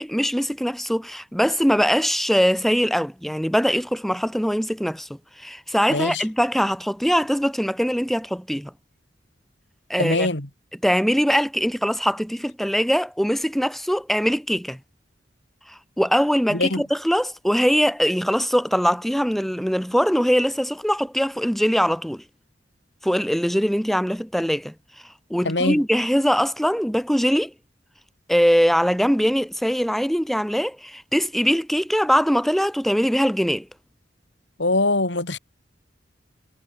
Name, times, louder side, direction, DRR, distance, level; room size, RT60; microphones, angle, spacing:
voice 1, 0.0-8.7 9.9-10.3 10.8-14.8 15.7-22.2 23.0-24.7 25.3-27.5 28.3-33.7, equal, ahead, 3.1 m, -22 dB
voice 2, 5.9-6.2 10.0-10.5 16.5-16.8 25.4-25.8 34.6-35.4, left 2 dB, 75° left, 4.2 m, -23 dB
head